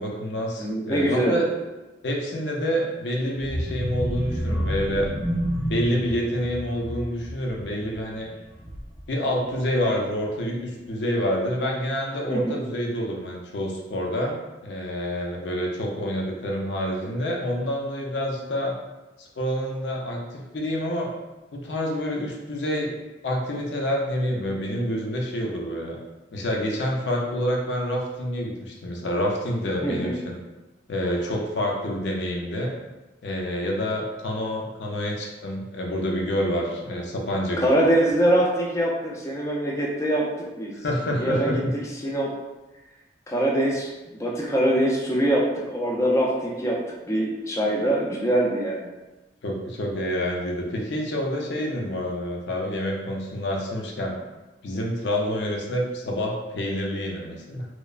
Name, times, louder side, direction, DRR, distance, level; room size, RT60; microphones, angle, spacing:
voice 1, 0.0-1.4 2.0-5.1 5.7-8.3 9.1-14.4 14.6-18.7 19.2-21.1 21.5-22.9 23.2-26.0 26.3-30.4 30.9-32.7 33.2-37.8 40.8-41.7 49.4-54.1 54.6-57.7, equal, 70° left, -1 dB, 0.5 m, -27 dB
voice 2, 0.6-1.4 12.3-12.6 29.8-30.2 37.6-40.3 40.6-40.7 41.2-41.6 42.0-42.3 43.3-46.8 47.0-48.9, right 1 dB, 15° left, -3 dB, 0.3 m, -23 dB
sound 1, 3.4-9.1 9.5-9.8 10.1-10.2, equal, 15° right, 0.8 m, -30 dB
3.0 x 2.0 x 2.3 m, 1.1 s
head